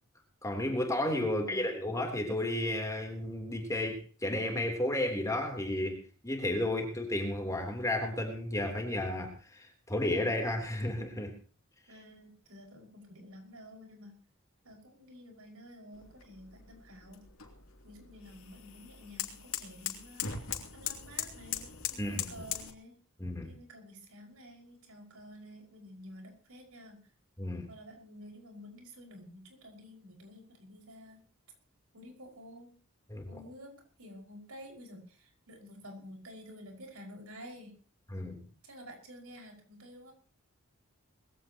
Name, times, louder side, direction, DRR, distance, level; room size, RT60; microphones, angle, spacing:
voice 1, 0.4-6.0 6.2-11.3 22.0-22.3 23.2-23.5 27.4-27.7 33.1-33.4 38.1-38.5, left 1 dB, 15° left, 2 dB, 3.5 m, -33 dB
voice 2, 1.3-1.7 11.9-14.2 14.6-17.2 17.8-20.3 20.7-22.9 23.4-27.0 27.7-31.2 31.9-32.7 33.3-37.7 38.6-40.1, equal, 75° right, 2 dB, 5.7 m, -51 dB
sound 1, 15.9-22.7, left 9 dB, 70° left, 2.9 m, -40 dB
21.0 x 16.0 x 3.0 m, 0.37 s
head